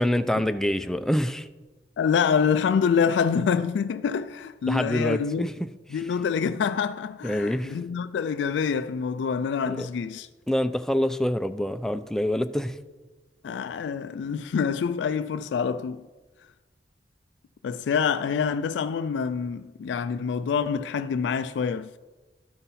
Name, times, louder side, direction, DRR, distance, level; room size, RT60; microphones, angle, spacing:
voice 1, 0.0-1.5 4.7-5.5 7.2-7.8 9.7-9.9 10.5-12.7, left 1 dB, 5° left, 0.3 m, -26 dB
voice 2, 2.0-5.5 5.9-10.3 13.4-16.1 17.6-22.0, left 6 dB, 85° left, 0.3 m, -26 dB
12.5 x 5.5 x 4.1 m
head